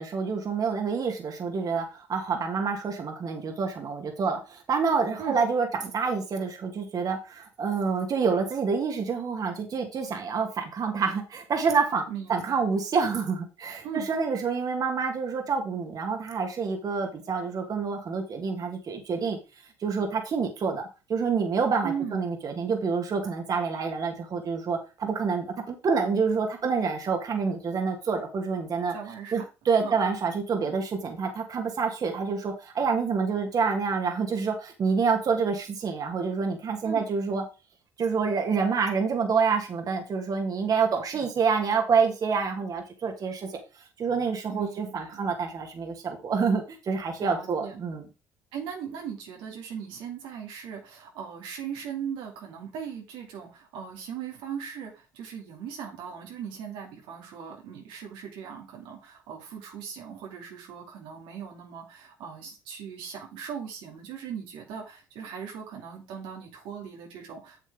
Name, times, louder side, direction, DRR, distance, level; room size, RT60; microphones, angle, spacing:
voice 1, 0.0-19.4 19.8-28.9 29.3-37.4 38.0-43.5 44.0-48.0, right 5 dB, 45° right, 3 dB, 2.3 m, -27 dB
voice 2, 12.1-12.6 13.8-14.1 21.8-22.2 28.9-29.5 29.8-30.0 36.8-37.1 44.5-45.2 47.2-47.8 48.5-67.6, right 8 dB, 75° right, 0 dB, 2.5 m, -38 dB
7.8 x 7.3 x 3.6 m, 0.29 s
supercardioid pair, 80°, 8 cm